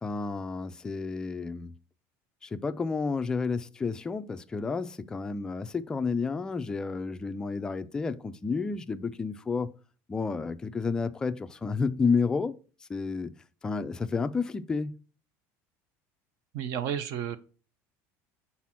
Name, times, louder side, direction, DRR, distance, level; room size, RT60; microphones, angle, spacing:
voice 1, 0.0-1.7 2.4-9.7 10.1-12.5 12.9-13.3 13.6-14.9, left 4 dB, 10° left, 0.3 m, -30 dB
voice 2, 16.5-17.4, right 9 dB, 55° right, 0.6 m, -31 dB
5.8 x 4.1 x 6.1 m
cardioid pair, 175°, 7 cm